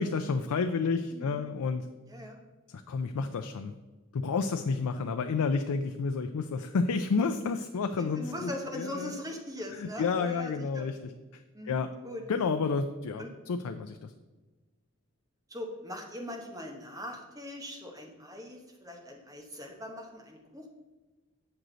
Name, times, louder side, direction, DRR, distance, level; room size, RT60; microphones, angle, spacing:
voice 1, 0.0-1.8 2.9-3.7 4.1-9.1 9.8-11.4 11.7-11.9 12.3-14.1, left 4 dB, 85° left, 7 dB, 0.4 m, -30 dB
voice 2, 1.1-1.4 2.1-2.4 5.0-5.3 7.9-10.9 11.5-12.2 13.2-13.3 15.5-20.7, left 1 dB, 15° right, 1 dB, 0.9 m, -41 dB
7.8 x 6.3 x 3.9 m, 1.2 s
head